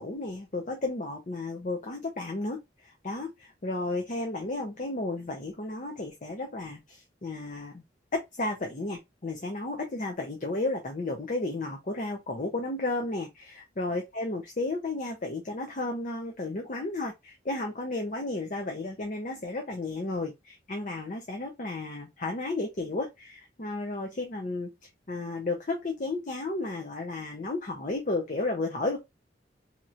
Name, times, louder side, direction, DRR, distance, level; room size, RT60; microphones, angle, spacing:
voice 1, 0.0-7.8 8.1-24.7 25.1-29.0, left 2 dB, 45° left, 0.6 m, -33 dB
4.2 x 2.9 x 2.4 m
head